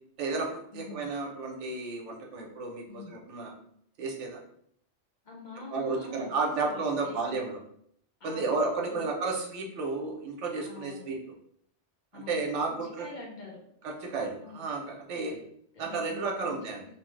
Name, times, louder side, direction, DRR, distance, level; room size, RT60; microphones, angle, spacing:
voice 1, 0.2-3.5 4.0-4.4 5.7-7.6 8.2-11.2 12.1-13.1 13.8-15.3 15.8-16.8, right 3 dB, 85° right, 0 dB, 1.0 m, -32 dB
voice 2, 0.7-1.1 2.9-3.1 5.2-7.4 8.2-8.4 8.8-9.0 10.6-11.1 12.1-12.4 12.7-13.6 14.4-14.6 15.1-15.4 15.7-16.9, left 3 dB, 50° left, -3 dB, 0.7 m, -45 dB
3.0 x 2.0 x 3.1 m, 0.68 s
omnidirectional pair, 1.2 m